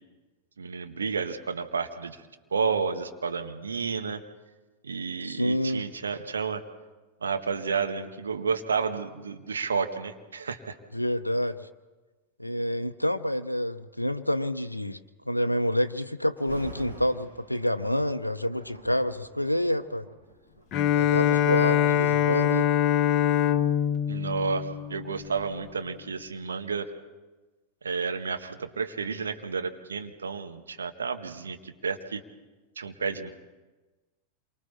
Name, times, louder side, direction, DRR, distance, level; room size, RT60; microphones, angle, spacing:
voice 1, 0.6-2.2 2.5-4.2 4.8-6.6 7.2-10.7 24.1-26.9 27.8-32.2 32.8-33.3, right 5 dB, 70° right, 6 dB, 1.5 m, -31 dB
voice 2, 5.2-5.8 10.9-11.7 12.4-15.0 15.3-20.1 20.9-22.7, equal, 85° left, 9 dB, 0.6 m, -28 dB
Thunder, 16.4-21.3 22.0-22.2 22.9-25.7 26.0-26.1, right 2 dB, 90° right, 6.5 m, -48 dB
Bowed string instrument, 20.7-25.4, left 11 dB, 35° left, 0.9 m, -24 dB
28.0 x 24.0 x 4.3 m, 1.2 s
figure-of-eight pair, 90°, 0 cm